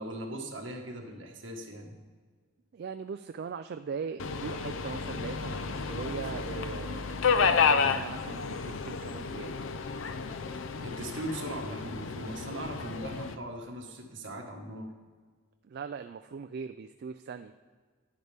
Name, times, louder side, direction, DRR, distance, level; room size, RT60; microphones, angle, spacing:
voice 1, 0.0-1.9 10.8-14.9, right 1 dB, 70° right, 1 dB, 1.6 m, -39 dB
voice 2, 2.7-9.5 15.6-17.5, right 6 dB, 55° right, 9 dB, 0.3 m, -40 dB
Subway metro underground, 4.2-13.4, left 5 dB, 90° left, 0.5 m, -31 dB
10.5 x 10.0 x 3.5 m, 1.6 s
head